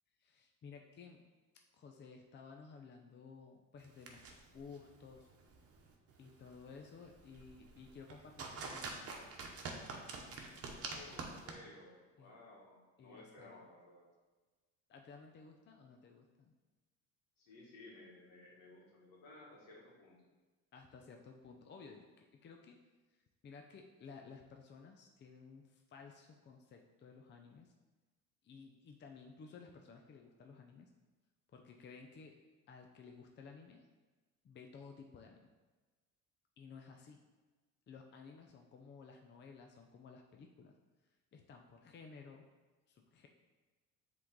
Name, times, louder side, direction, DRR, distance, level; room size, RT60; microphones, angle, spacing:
voice 1, 0.2-1.2 1.7-5.3 6.2-9.3 10.3-11.5 12.2-12.4 13.0-13.6 14.9-16.5 20.7-22.8 23.1-27.7 28.4-30.9 31.5-32.4 32.7-33.9 34.4-35.5 36.6-37.2 37.9-40.8 41.3-42.5 42.9-43.3, left 5 dB, 35° left, 3 dB, 0.6 m, -55 dB
sound 1, 3.8-11.5, right 4 dB, 45° right, 1.1 m, -48 dB
voice 2, 10.7-14.1 17.4-20.2 21.0-21.1, left 2 dB, 80° left, -4 dB, 2.0 m, -57 dB
7.3 x 3.8 x 3.9 m, 1.3 s
cardioid pair, 105°, 33 cm